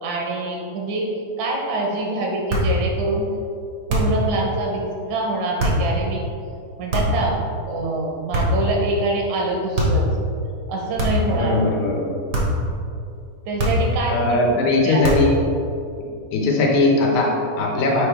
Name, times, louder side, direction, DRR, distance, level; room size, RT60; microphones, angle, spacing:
voice 1, 0.0-1.1 1.4-3.3 3.9-6.2 6.8-7.4 7.7-10.1 10.7-11.6 13.5-15.1, right 2 dB, 80° right, -1 dB, 2.2 m, -25 dB
sound 1, 2.5-2.8 3.9-4.3 5.6-5.9 6.9-7.3 8.3-8.7 9.7-10.1 11.0-11.4 12.3-12.7 13.6-14.0 15.0-15.4, equal, 60° right, 0.8 m, -21 dB
voice 2, 11.3-12.1 14.1-15.3 16.3-18.1, left 2 dB, 85° left, -1 dB, 2.4 m, -19 dB
6.8 x 4.5 x 3.4 m, 2.5 s
omnidirectional pair, 3.4 m